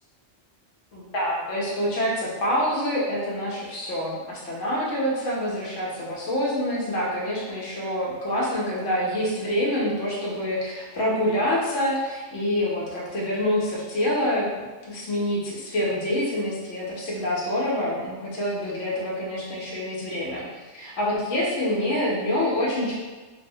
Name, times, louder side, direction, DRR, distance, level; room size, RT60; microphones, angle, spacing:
voice 1, 0.9-22.9, left 1 dB, 90° left, -5 dB, 1.0 m, -26 dB
2.8 x 2.0 x 2.6 m, 1.3 s
omnidirectional pair, 1.2 m